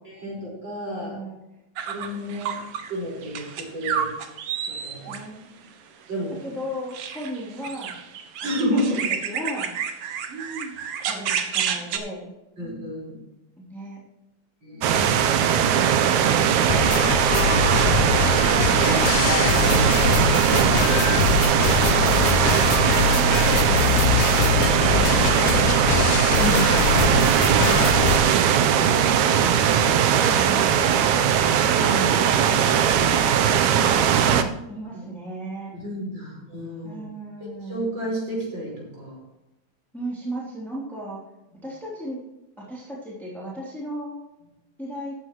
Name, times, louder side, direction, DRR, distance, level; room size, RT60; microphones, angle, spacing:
voice 1, 0.0-1.2 1.9-2.6 2.9-4.1 4.7-5.2 6.1-6.4 8.4-9.0 12.6-13.2 14.6-15.4 26.3-26.8 31.5-33.5 35.7-37.0 37.5-39.2 41.5-41.7, equal, 40° right, -4 dB, 5.6 m, -31 dB
voice 2, 1.0-1.3 5.1-5.4 6.4-8.0 8.6-8.8 9.2-9.7 11.0-12.3 13.6-14.0 21.9-22.4 22.9-24.8 34.3-35.7 36.8-37.9 39.9-41.2 41.6-42.2 42.6-44.2 44.8-45.2, right 1 dB, ahead, -6 dB, 2.7 m, -36 dB
sound 1, 1.8-2.9 3.2-5.2 6.9-12.0, right 7 dB, 65° right, 1.8 m, -30 dB
sound 2, 14.8-34.4, right 8 dB, 85° right, 2.2 m, -19 dB
sound 3, 16.7-28.2, left 7 dB, 85° left, 2.0 m, -23 dB
14.0 x 9.9 x 3.1 m, 0.95 s
omnidirectional pair, 3.3 m